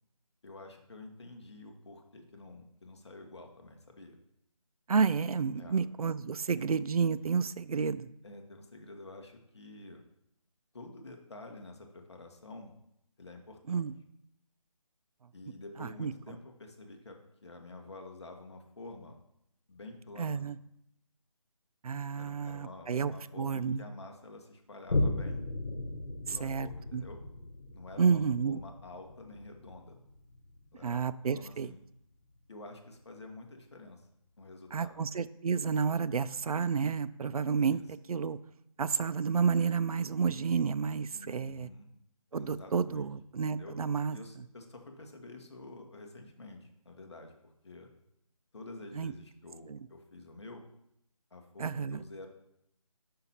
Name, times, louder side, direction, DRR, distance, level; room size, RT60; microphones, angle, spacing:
voice 1, 0.4-4.2 5.6-5.8 6.5-6.6 8.2-10.0 10.7-12.7 13.2-13.9 15.3-19.2 19.7-20.5 22.2-25.4 26.3-27.2 27.7-28.2 28.4-30.0 30.7-31.8 32.5-34.1 34.4-35.0 37.7-37.8 41.1-41.9 42.3-43.1 43.5-43.8 44.1-47.9 48.5-50.6 51.3-52.3, left 2 dB, 50° left, 3 dB, 1.2 m, -49 dB
voice 2, 4.9-8.1 13.7-13.9 15.8-16.1 20.2-20.6 21.8-23.8 26.3-27.0 28.0-28.6 30.8-31.7 34.7-37.8 38.1-38.4 38.8-41.7 42.3-44.2 49.0-49.1 49.7-49.8 51.6-52.0, right 6 dB, 80° right, 15 dB, 0.4 m, -30 dB
Boom, 24.9-31.8 32.3-32.4, left 2 dB, 75° left, 1.3 m, -37 dB
5.8 x 5.7 x 4.2 m, 0.77 s
figure-of-eight pair, 175°, 19 cm